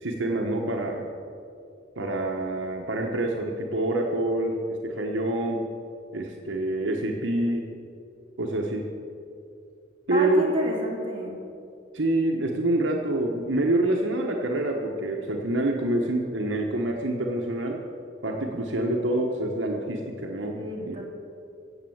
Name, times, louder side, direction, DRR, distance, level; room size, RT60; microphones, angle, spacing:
voice 1, 0.0-1.1 2.0-5.6 6.1-7.7 8.4-8.9 10.1-10.4 11.9-17.8 18.2-21.0, right 1 dB, 70° right, 1 dB, 1.1 m, -26 dB
voice 2, 10.1-11.4 20.5-21.0, equal, 25° right, -3 dB, 3.1 m, -30 dB
15.0 x 8.2 x 7.8 m, 2.6 s
head